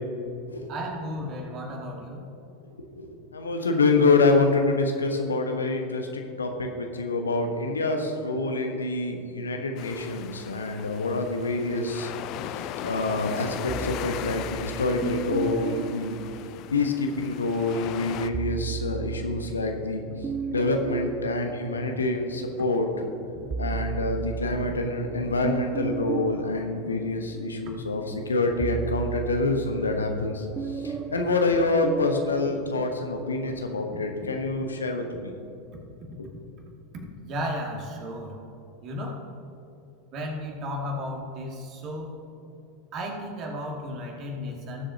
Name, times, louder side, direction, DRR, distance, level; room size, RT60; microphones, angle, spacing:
voice 1, 0.7-2.2 37.2-38.4 38.8-39.2 40.1-42.1 42.9-44.9, equal, 40° right, 0 dB, 2.2 m, -34 dB
voice 2, 2.9-12.1 12.8-16.2 16.7-20.0 20.5-22.9 23.6-35.3, left 3 dB, 75° left, 4 dB, 1.1 m, -26 dB
sound 1, 9.8-18.3, left 11 dB, 45° left, 0.5 m, -38 dB
sound 2, 13.7-17.2 18.1-22.6 23.0-32.3, right 6 dB, 20° right, 0.3 m, -35 dB
19.0 x 7.7 x 2.8 m, 2.8 s
figure-of-eight pair, 85°, 0 cm